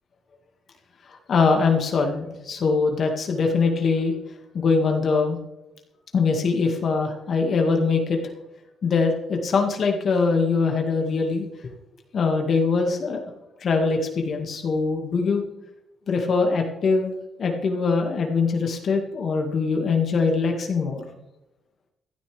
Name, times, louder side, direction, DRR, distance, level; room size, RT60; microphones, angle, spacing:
voice 1, 1.3-4.1 4.5-5.4 6.1-8.2 8.8-11.4 12.1-13.2 13.6-15.4 16.1-17.1 17.4-21.0, left 4 dB, 55° left, 3 dB, 1.9 m, -22 dB
16.5 x 12.0 x 3.4 m, 0.97 s
cardioid pair, 90°, 0 cm